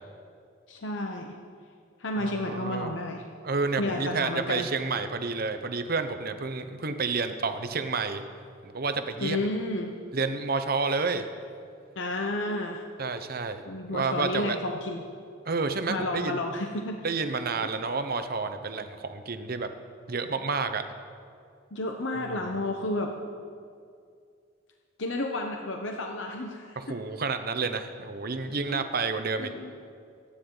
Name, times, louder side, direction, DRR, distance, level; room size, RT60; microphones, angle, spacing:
voice 1, 0.7-1.4 2.0-3.3 3.8-4.7 9.2-9.9 11.9-12.8 13.7-15.0 15.9-17.0 21.7-23.1 25.0-27.0 28.7-28.9 29.4-29.7, left 2 dB, 75° left, 2 dB, 0.9 m, -31 dB
voice 2, 2.2-3.0 3.4-8.2 8.6-9.4 10.1-11.3 13.0-13.6 13.9-14.6 15.4-16.4 17.0-19.7 20.1-20.8 22.2-22.4 26.8-29.5, right 4 dB, 50° right, 9 dB, 0.9 m, -30 dB
26.0 x 9.9 x 3.9 m, 2.3 s
head